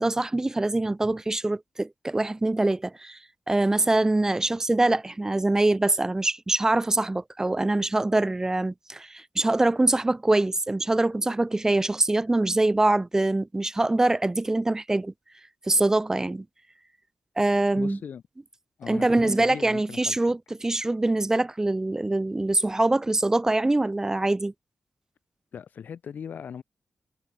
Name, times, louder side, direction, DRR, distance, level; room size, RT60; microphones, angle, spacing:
voice 1, 0.0-3.2 3.5-15.1 15.7-16.5 17.4-18.0 18.9-24.5, right 2 dB, 20° right, 0.5 m, -24 dB
voice 2, 17.8-18.2 18.8-20.2 25.5-26.6, left 7 dB, 85° left, 5.3 m, -39 dB
wide cardioid pair, 100°, 3 cm